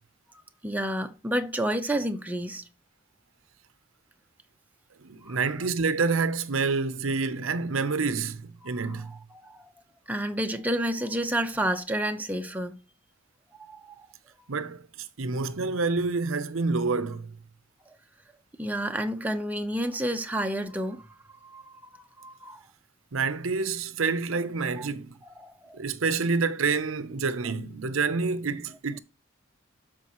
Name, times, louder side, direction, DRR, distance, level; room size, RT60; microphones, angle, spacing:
voice 1, 0.6-2.7 5.2-5.4 8.8-9.0 9.4-9.7 10.1-12.8 13.6-14.1 17.9-18.0 18.6-22.6 24.8-24.9 25.4-25.8, right 1 dB, 10° right, 0.8 m, -30 dB
voice 2, 5.0-9.1 14.5-17.3 23.1-25.1 25.7-29.0, right 4 dB, 90° right, 0.8 m, -28 dB
12.5 x 5.2 x 3.1 m
head